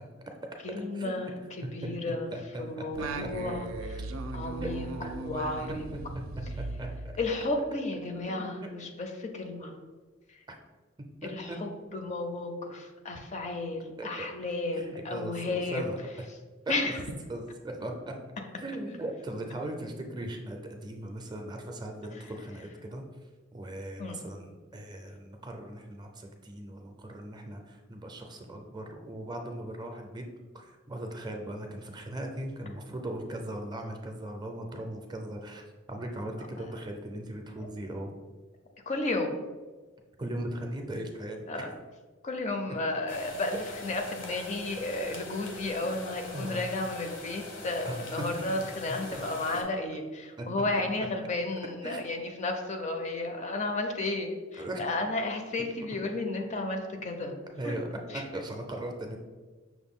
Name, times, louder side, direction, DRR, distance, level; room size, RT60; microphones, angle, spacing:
voice 1, 0.6-2.3 2.6-3.7 4.3-4.9 5.2-5.9 7.2-9.7 11.2-15.9 16.7-17.0 24.0-24.2 38.9-39.4 41.5-41.7 42.2-57.3 57.6-57.7 58.1-58.2, left 2 dB, 35° left, 4 dB, 0.4 m, -33 dB
voice 2, 1.8-3.5 4.6-4.7 5.0-5.1 6.6-7.1 8.3-8.7 10.5-10.6 11.2-11.6 14.0-14.3 14.7-16.1 16.8-16.9 17.3-18.1 18.6-23.0 23.5-30.3 30.5-38.1 40.2-41.7 42.7-42.8 45.1-45.2 46.3-46.6 47.8-48.3 49.1-49.2 50.4-50.5 51.0-51.1 51.8-52.1 54.6-54.9 57.6-59.2, right 1 dB, 20° right, 3 dB, 0.4 m, -39 dB
Singing, 2.9-7.7, right 2 dB, 90° right, 0.4 m, -38 dB
sound 1, 43.1-49.6, left 2 dB, 70° left, 0.8 m, -43 dB
5.9 x 2.2 x 3.6 m, 1.4 s
head